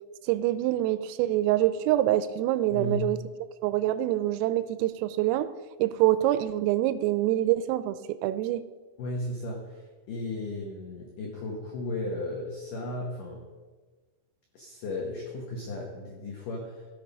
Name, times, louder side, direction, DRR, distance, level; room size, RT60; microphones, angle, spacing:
voice 1, 0.2-3.2 3.6-5.5 5.8-8.6, right 14 dB, 85° right, 13 dB, 3.2 m, -25 dB
voice 2, 2.7-3.1 9.0-13.5 14.5-16.9, left 2 dB, 90° left, 0 dB, 1.8 m, -35 dB
16.0 x 6.7 x 5.4 m, 1.4 s
omnidirectional pair, 5.9 m